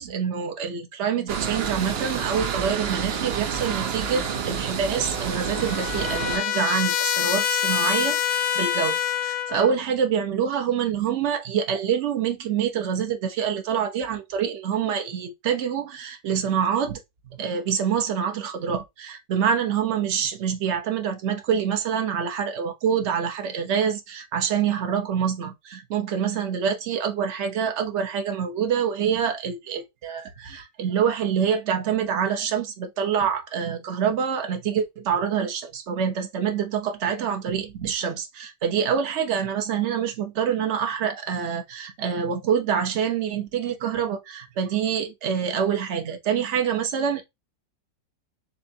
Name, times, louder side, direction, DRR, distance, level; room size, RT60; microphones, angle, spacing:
voice 1, 0.0-17.0 17.4-47.2, right 7 dB, 50° right, 0.9 m, -26 dB
sound 1, 1.3-6.4, right 7 dB, 85° right, 0.5 m, -29 dB
Trumpet, 5.0-9.7, left 10 dB, 70° left, 1.0 m, -26 dB
7.0 x 2.5 x 2.7 m
omnidirectional pair, 1.9 m